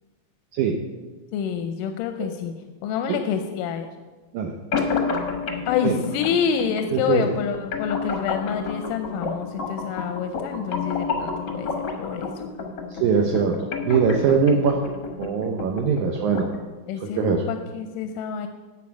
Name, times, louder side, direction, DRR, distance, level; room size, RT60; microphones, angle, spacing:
voice 1, 1.3-2.5 2.8-3.9 5.7-11.7 12.0-12.3 16.9-18.5, left 7 dB, 90° left, 7 dB, 2.2 m, -27 dB
sound 1, 4.7-16.7, left 4 dB, 60° left, 1.1 m, -30 dB
voice 2, 6.9-7.3 12.9-14.8 15.2-16.5 17.0-17.4, right 6 dB, 75° right, 2 dB, 2.1 m, -22 dB
12.0 x 4.8 x 8.4 m, 1.3 s
omnidirectional pair, 3.7 m